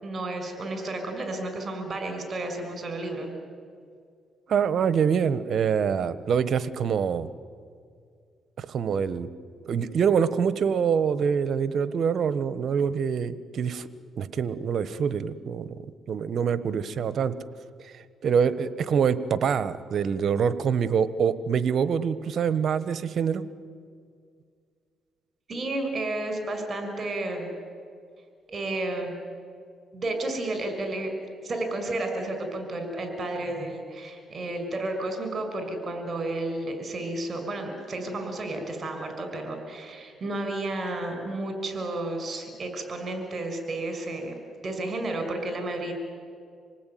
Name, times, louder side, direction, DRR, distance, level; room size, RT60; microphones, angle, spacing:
voice 1, 0.0-3.4 25.5-27.5 28.5-29.1 29.9-31.1 31.4-44.4 44.6-45.9, right 2 dB, 45° right, 6 dB, 5.9 m, -32 dB
voice 2, 4.5-7.3 8.6-9.3 9.6-13.9 14.2-15.7 16.1-17.3 17.8-17.9 18.2-23.4, right 7 dB, 60° right, 14 dB, 1.2 m, -25 dB
27.0 x 19.0 x 9.3 m, 2.2 s
cardioid pair, 90°, 0 cm